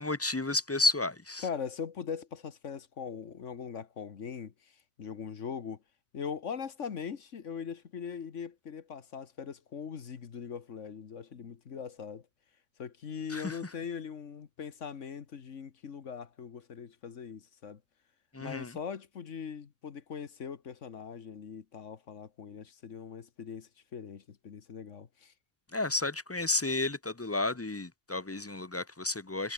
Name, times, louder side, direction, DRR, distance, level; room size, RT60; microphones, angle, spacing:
voice 1, 0.0-1.4 13.3-13.6 18.3-18.7 25.7-29.5, left 2 dB, 20° left, 0.4 m, -31 dB
voice 2, 1.4-5.8 6.1-12.2 12.8-17.8 18.4-25.3, left 6 dB, 70° left, 1.6 m, -41 dB
omnidirectional pair, 1.3 m